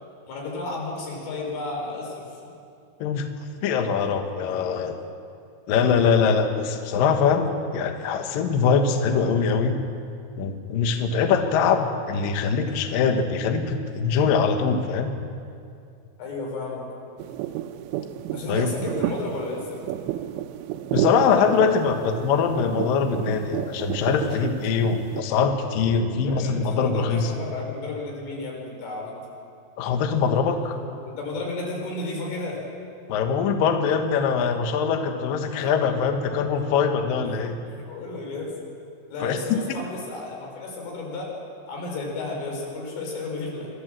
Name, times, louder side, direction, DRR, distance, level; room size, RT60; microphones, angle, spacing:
voice 1, 0.3-2.3 16.2-16.9 18.3-19.8 26.2-29.2 30.5-32.7 35.6-35.7 37.6-38.5 39.1-41.4 41.7-43.7, left 3 dB, 85° left, -1 dB, 6.7 m, -33 dB
voice 2, 3.6-5.0 5.7-9.7 10.4-15.1 18.5-18.7 20.9-27.3 29.8-30.8 33.1-37.6 39.2-39.6, left 6 dB, 65° left, 5 dB, 2.4 m, -23 dB
sound 1, 17.2-25.2, right 12 dB, 85° right, 3.1 m, -31 dB
25.0 x 14.5 x 7.5 m, 2.5 s
omnidirectional pair, 5.5 m